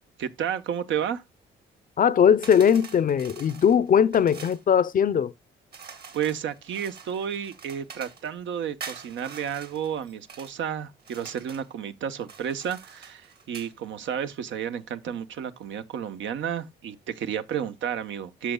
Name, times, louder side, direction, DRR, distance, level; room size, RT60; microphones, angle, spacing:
voice 1, 0.2-1.2 6.1-18.5, right 8 dB, 75° right, 0.9 m, -31 dB
voice 2, 2.0-5.3, left 8 dB, 45° left, 0.6 m, -20 dB
sound 1, 2.4-4.6 5.7-8.3 8.8-10.5 11.0-11.7 12.2-13.7, right 6 dB, 55° right, 2.1 m, -45 dB
13.0 x 6.3 x 2.2 m
cardioid pair, 90°, 20 cm